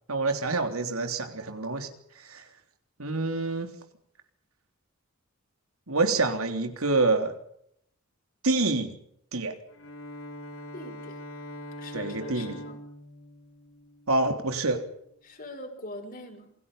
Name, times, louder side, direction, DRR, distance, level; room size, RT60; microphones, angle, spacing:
voice 1, 0.1-1.9 2.2-2.4 3.0-3.7 5.9-7.3 8.4-9.0 9.3-9.6 11.9-12.6 14.1-14.8, right 3 dB, 85° right, 6 dB, 3.5 m, -27 dB
Bowed string instrument, 9.7-14.6, left 1 dB, 75° left, 3.6 m, -43 dB
voice 2, 10.7-11.2 11.8-12.8 15.2-16.5, left 1 dB, 40° left, 4 dB, 6.1 m, -42 dB
28.0 x 22.0 x 5.6 m, 0.72 s
head